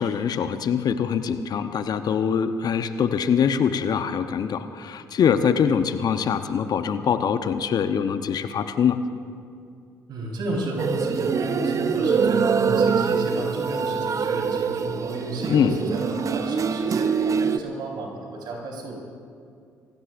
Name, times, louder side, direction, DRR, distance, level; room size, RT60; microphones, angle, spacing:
voice 1, 0.0-9.0 15.5-15.8, left 7 dB, 50° left, 10 dB, 0.8 m, -23 dB
voice 2, 10.1-18.9, right 1 dB, 60° right, -2 dB, 4.5 m, -32 dB
sound 1, 10.8-17.6, right 6 dB, 40° right, 0.7 m, -24 dB
27.5 x 17.5 x 2.6 m, 2.4 s
hypercardioid pair, 50°, 8 cm